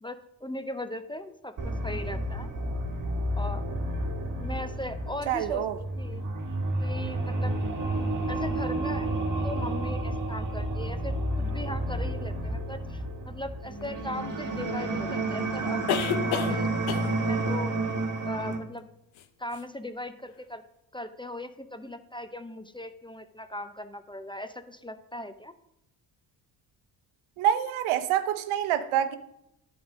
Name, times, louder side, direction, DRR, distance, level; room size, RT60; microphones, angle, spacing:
voice 1, 0.0-2.5 3.4-3.6 4.4-6.3 6.8-7.6 8.3-9.1 9.4-17.7 18.2-18.9 19.4-20.6 20.9-25.5, left 1 dB, 10° left, 0.5 m, -39 dB
sound 1, 1.6-18.6, right 1 dB, 40° right, 1.5 m, -30 dB
voice 2, 5.3-5.8 27.4-29.2, right 10 dB, 80° right, 0.8 m, -26 dB
sound 2, 13.8-13.9 15.9-16.6 16.9-17.2 19.2-19.3 19.5-19.6, left 9 dB, 70° left, 0.8 m, -30 dB
9.3 x 4.2 x 6.2 m
supercardioid pair, 60°, 49 cm